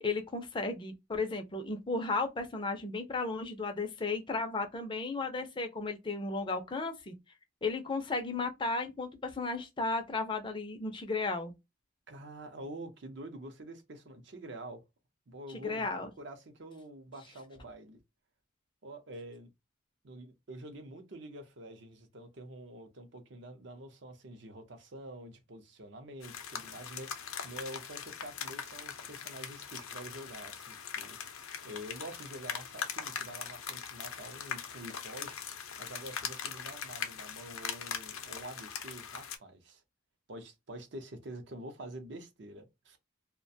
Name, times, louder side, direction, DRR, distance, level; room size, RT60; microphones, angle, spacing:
voice 1, 0.0-7.1 7.6-11.5 15.5-16.1, left 3 dB, 25° left, 0.5 m, -34 dB
voice 2, 12.1-14.8 15.3-15.9 16.2-18.0 18.8-19.5 20.0-27.1 27.4-31.2 31.6-35.4 35.8-39.8 40.3-43.0, right 1 dB, 55° right, 0.6 m, -47 dB
sound 1, 26.2-39.4, left 7 dB, 80° left, 0.5 m, -41 dB
2.4 x 2.2 x 2.6 m
head